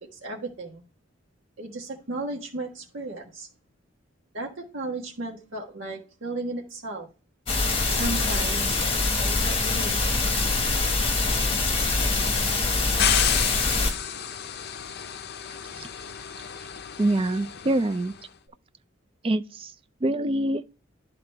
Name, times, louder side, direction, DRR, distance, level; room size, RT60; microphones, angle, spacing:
voice 1, 0.1-0.8 1.6-3.5 4.3-7.1 7.9-10.0, right 2 dB, 75° right, 1.4 m, -35 dB
sound 1, 7.5-13.9, left 3 dB, 30° left, 1.5 m, -24 dB
sound 2, 13.0-18.1, left 9 dB, 55° left, 0.6 m, -30 dB
voice 2, 17.0-18.1 19.2-19.7 20.0-20.6, right 1 dB, 25° right, 0.4 m, -25 dB
11.5 x 4.0 x 3.3 m
head